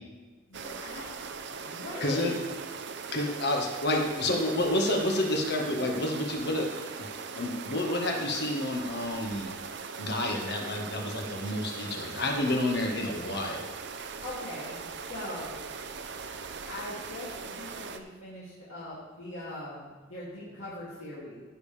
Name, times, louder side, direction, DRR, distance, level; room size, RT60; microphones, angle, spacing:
voice 1, 0.5-1.1 1.6-2.4 14.2-15.6 16.7-21.4, left 1 dB, 70° left, -10 dB, 2.8 m, -41 dB
sound 1, 0.5-18.0, right 5 dB, 60° right, 0.7 m, -40 dB
voice 2, 2.0-2.4 3.1-6.7 7.0-7.1 7.3-9.5 10.0-13.7, left 1 dB, 55° left, 2 dB, 1.6 m, -29 dB
15.5 x 6.9 x 3.4 m, 1.4 s
head